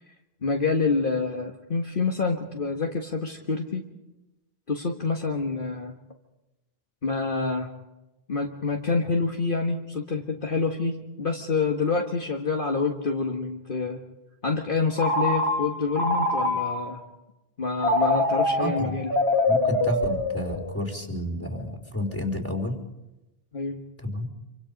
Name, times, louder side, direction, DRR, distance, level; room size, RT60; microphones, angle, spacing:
voice 1, 0.4-3.8 4.7-5.9 7.0-7.7 8.3-14.0 14.4-17.0 17.6-19.1 23.5-23.8, left 4 dB, 55° left, 1 dB, 1.8 m, -27 dB
Telephone, 15.0-17.0 17.8-20.9, left 1 dB, 80° left, 3.4 m, -25 dB
voice 2, 18.6-19.0 19.5-22.8 24.0-24.3, left 1 dB, 10° left, 1 dB, 4.1 m, -30 dB
27.5 x 25.0 x 5.3 m, 0.99 s
omnidirectional pair, 1.1 m